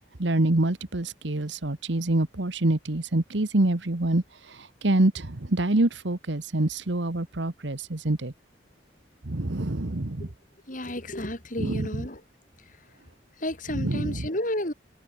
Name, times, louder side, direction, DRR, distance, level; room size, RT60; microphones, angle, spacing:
voice 1, 0.2-4.2 4.8-8.3 9.2-10.3 11.6-12.1 13.7-14.3, right 2 dB, 70° right, 1.4 m, -26 dB
voice 2, 10.7-12.2 13.4-14.7, left 1 dB, 45° left, 5.2 m, -31 dB
open air
head